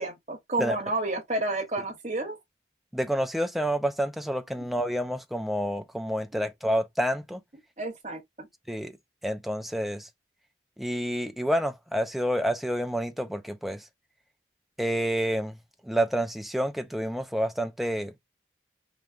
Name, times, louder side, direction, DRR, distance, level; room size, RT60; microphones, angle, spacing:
voice 1, 0.0-2.4 4.6-4.7 6.3-6.4 7.8-8.5, right 2 dB, 40° right, 1.7 m, -31 dB
voice 2, 2.9-7.4 8.7-9.0 9.2-10.1 10.8-13.8 14.8-15.6 15.8-18.2, equal, ahead, 0.5 m, -28 dB
5.0 x 3.1 x 2.4 m
head